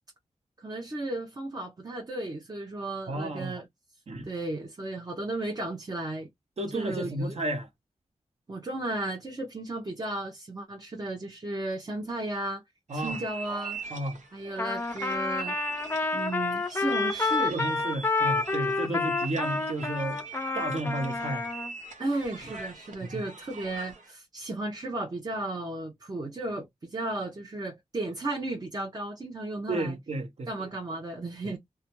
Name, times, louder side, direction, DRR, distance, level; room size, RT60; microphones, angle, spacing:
voice 1, 0.6-3.6 4.3-6.3 6.7-7.4 8.5-12.6 12.9-13.8 14.3-15.6 16.1-17.6 18.8-19.1 22.0-30.0 30.5-31.6, right 2 dB, 30° right, 0.6 m, -34 dB
voice 2, 3.1-3.5 4.1-4.3 6.6-7.7 12.9-13.2 13.9-14.2 17.5-20.2 20.5-21.5 23.0-23.2 29.7-30.5 31.4-31.5, right 1 dB, 60° right, 0.9 m, -32 dB
sound 1, 12.9-24.1, right 3 dB, 85° right, 0.7 m, -41 dB
Trumpet, 14.6-21.7, left 3 dB, 20° left, 0.4 m, -29 dB
2.4 x 2.2 x 2.9 m
wide cardioid pair, 120°, 12 cm